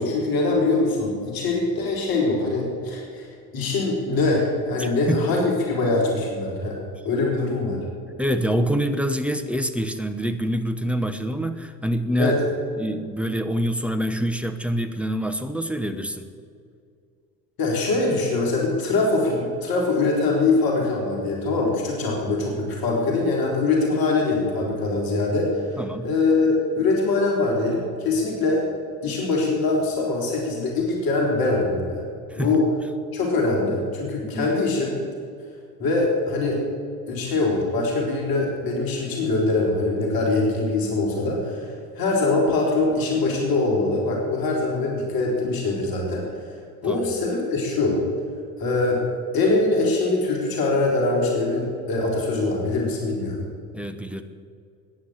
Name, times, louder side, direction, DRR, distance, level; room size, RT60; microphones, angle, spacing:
voice 1, 0.0-6.8 7.0-7.8 12.2-12.4 17.6-28.7 29.0-32.0 32.3-32.6 33.1-35.0 35.8-36.6 37.1-46.3 46.8-48.0 48.6-49.0 49.3-53.5, left 3 dB, 45° left, -1 dB, 3.8 m, -23 dB
voice 2, 4.8-5.2 8.2-12.4 12.8-16.3 25.8-26.1 32.3-32.6 34.3-34.5 46.9-47.0 53.7-54.2, equal, 5° right, 9 dB, 1.0 m, -26 dB
15.0 x 9.6 x 8.8 m, 2.3 s
figure-of-eight pair, 60°, 49 cm